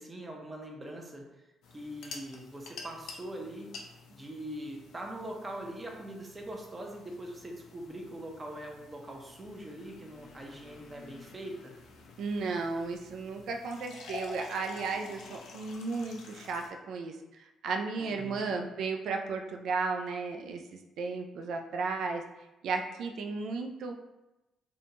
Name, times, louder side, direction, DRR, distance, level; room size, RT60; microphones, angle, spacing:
voice 1, 0.0-1.4 1.7-3.7 4.1-11.7 18.0-18.6, right 1 dB, 25° right, 1 dB, 0.5 m, -42 dB
sound 1, 1.6-16.7, left 4 dB, 80° left, 0.4 m, -49 dB
voice 2, 12.2-17.2 17.6-22.2 22.6-23.9, right 4 dB, 75° right, 3 dB, 0.3 m, -34 dB
2.7 x 2.2 x 2.7 m, 0.99 s
cardioid pair, 90°, 0 cm